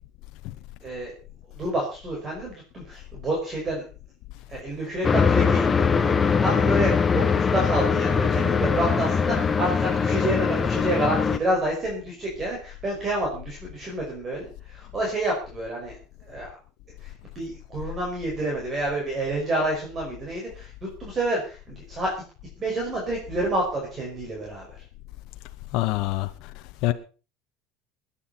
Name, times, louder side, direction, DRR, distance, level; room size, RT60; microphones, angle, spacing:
voice 1, 0.8-1.1 1.5-3.9 4.5-16.5 17.0-22.1 22.6-24.8, right 1 dB, 30° right, 5.5 m, -29 dB
sound 1, 5.0-11.4, left 6 dB, 20° left, 1.1 m, -22 dB
voice 2, 25.7-26.3 26.8-26.9, left 17 dB, 65° left, 1.0 m, -24 dB
21.0 x 10.0 x 4.3 m
supercardioid pair, 125°, 0 cm